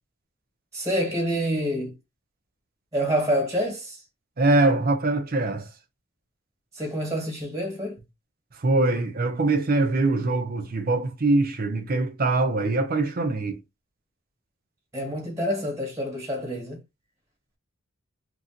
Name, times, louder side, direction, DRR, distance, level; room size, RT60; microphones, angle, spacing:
voice 1, 0.7-1.9 2.9-4.0 6.7-8.0 14.9-16.8, equal, 15° right, 1.4 m, -27 dB
voice 2, 4.4-5.7 8.6-13.6, right 2 dB, 45° right, 0.7 m, -23 dB
3.0 x 2.5 x 2.8 m
head